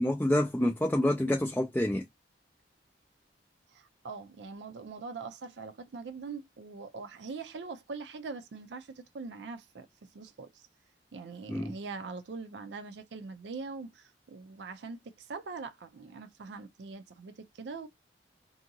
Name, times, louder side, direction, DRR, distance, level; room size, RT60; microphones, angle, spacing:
voice 1, 0.0-2.0 11.5-11.7, left 1 dB, 10° left, 0.3 m, -27 dB
voice 2, 3.7-9.9 10.1-10.7 11.1-17.9, right 4 dB, 75° right, 0.4 m, -42 dB
2.7 x 2.7 x 2.6 m
head